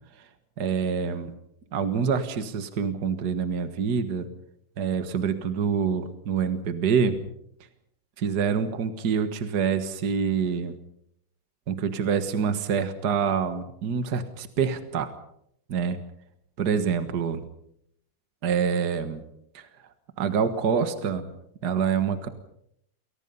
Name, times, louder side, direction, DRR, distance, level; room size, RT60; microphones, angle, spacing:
voice 1, 0.6-1.3 1.7-4.3 4.8-7.2 8.2-10.7 11.7-15.1 15.7-16.0 16.6-17.4 18.4-19.2 19.5-19.6 20.2-21.3 21.6-22.3, right 6 dB, 60° right, 9 dB, 2.0 m, -26 dB
29.0 x 23.0 x 5.6 m, 0.73 s
omnidirectional pair, 2.1 m